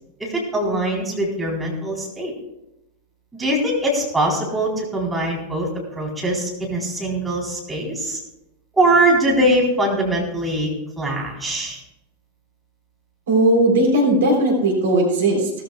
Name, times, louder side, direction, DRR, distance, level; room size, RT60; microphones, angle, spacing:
voice 1, 0.2-2.3 3.3-8.2 8.8-10.7 11.0-11.8, right 1 dB, 10° right, -3 dB, 3.9 m, -22 dB
voice 2, 13.3-15.5, right 1 dB, 60° right, 1 dB, 3.6 m, -17 dB
18.0 x 14.0 x 2.4 m, 0.90 s
figure-of-eight pair, 90°, 0 cm